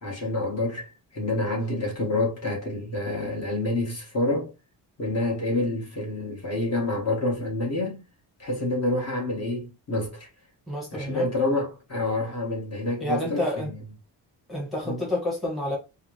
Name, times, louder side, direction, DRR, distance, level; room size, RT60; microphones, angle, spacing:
voice 1, 0.0-4.5 5.0-8.0 8.4-10.3 10.9-13.8 14.8-15.0, left 2 dB, 35° left, 1.6 m, -28 dB
voice 2, 10.7-11.2 13.0-13.7 14.5-15.8, left 1 dB, ahead, 1.3 m, -29 dB
4.5 x 2.3 x 3.2 m
cardioid pair, 160°, 45 cm